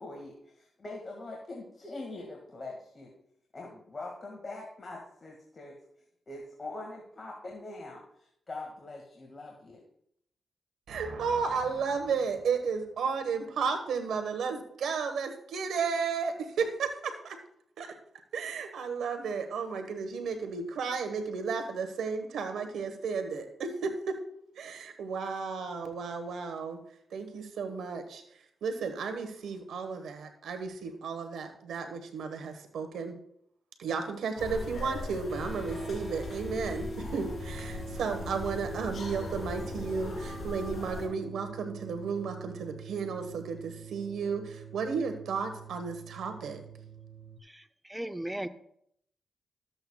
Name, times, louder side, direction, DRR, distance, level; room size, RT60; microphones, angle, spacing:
voice 1, 0.0-3.1 3.5-5.8 6.3-9.8, left 2 dB, 40° left, -1 dB, 1.9 m, -43 dB
voice 2, 10.9-17.4 17.8-17.9 18.3-24.1 24.5-26.8 27.1-28.2 28.6-33.1 33.8-46.6, right 5 dB, 80° right, 6 dB, 1.3 m, -33 dB
sound 1, 34.4-41.1, left 3 dB, 60° left, 2.8 m, -39 dB
sound 2, 35.3-47.4, right 5 dB, 25° right, 1.1 m, -44 dB
voice 3, 47.9-48.5, right 1 dB, 10° right, 10 dB, 0.7 m, -35 dB
13.0 x 7.9 x 2.3 m, 0.71 s
cardioid pair, 60°, 0 cm